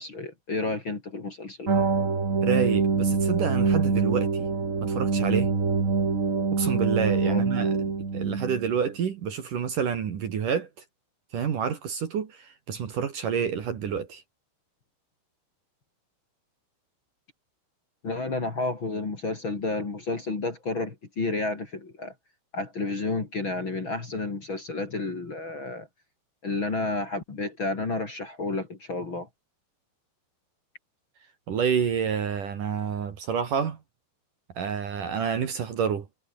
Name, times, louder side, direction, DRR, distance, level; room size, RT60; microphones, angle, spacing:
voice 1, 0.0-1.7 7.3-7.4 18.0-22.1 22.5-25.9 26.4-29.3, left 3 dB, 30° left, 3.3 m, -31 dB
sound 1, 1.7-8.7, right 4 dB, 35° right, 1.2 m, -25 dB
voice 2, 2.4-4.5 4.8-5.5 6.5-7.7 8.1-10.7 11.3-14.2 31.5-33.8 34.6-36.1, right 7 dB, 50° right, 3.4 m, -28 dB
omnidirectional pair, 5.1 m